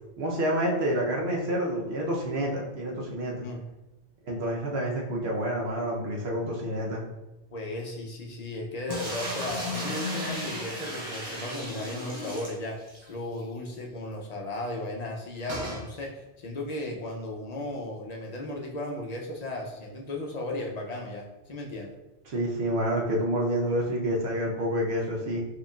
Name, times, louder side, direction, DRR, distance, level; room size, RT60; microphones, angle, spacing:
voice 1, 0.2-3.5 4.3-7.0 22.3-25.4, right 1 dB, 65° right, -2 dB, 1.0 m, -28 dB
voice 2, 7.5-12.8 13.1-21.9, left 1 dB, 50° left, 0 dB, 0.5 m, -35 dB
Pouring Water (Short), 8.9-13.1 13.4-13.5 13.7-13.8 15.5-15.8, left 1 dB, 40° right, 0.9 m, -34 dB
4.6 x 3.1 x 2.3 m, 1.0 s
omnidirectional pair, 1.2 m